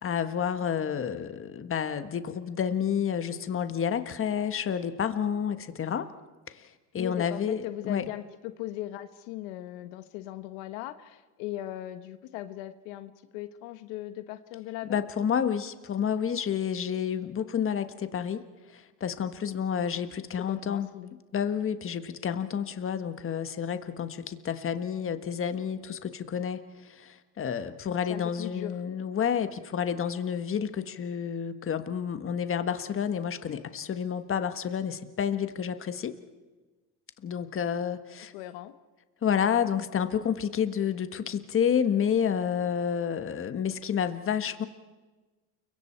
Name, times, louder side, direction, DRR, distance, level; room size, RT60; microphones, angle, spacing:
voice 1, 0.0-6.1 6.5-8.1 14.9-18.4 18.7-20.9 21.3-36.2 37.2-38.3 39.2-44.6, left 8 dB, 30° left, 10 dB, 1.4 m, -30 dB
voice 2, 7.0-15.0 20.4-21.2 28.1-28.8 38.3-38.7, left 14 dB, 90° left, 11 dB, 1.3 m, -39 dB
29.5 x 23.5 x 4.5 m, 1.2 s
cardioid pair, 115°, 41 cm